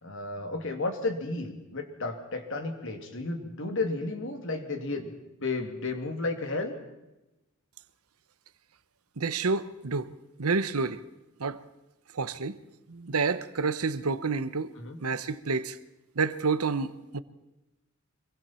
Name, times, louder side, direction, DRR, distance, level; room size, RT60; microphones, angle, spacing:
voice 1, 0.0-6.8 14.8-15.0, left 3 dB, 60° left, 2.8 m, -33 dB
voice 2, 9.2-10.1 10.4-11.0 11.4-11.6 12.1-12.6 12.9-14.7 15.0-15.8 16.1-17.2, right 4 dB, 80° right, 1.0 m, -29 dB
25.5 x 23.0 x 4.5 m
head